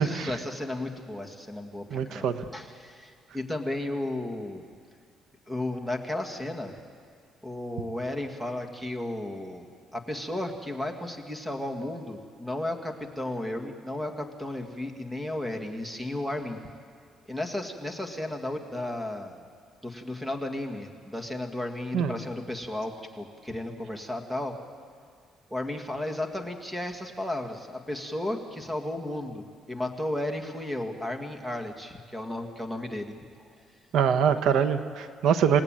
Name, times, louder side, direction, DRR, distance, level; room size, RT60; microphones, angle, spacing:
voice 1, 0.0-4.6 5.5-6.8 7.4-9.7 9.9-16.6 17.3-19.4 19.8-24.6 25.5-33.1, left 1 dB, 5° right, 4 dB, 1.9 m, -34 dB
voice 2, 1.9-2.4 21.9-22.1 33.9-35.6, right 7 dB, 70° right, 9 dB, 1.1 m, -24 dB
28.5 x 18.0 x 9.0 m, 2.1 s
cardioid pair, 145°, 0 cm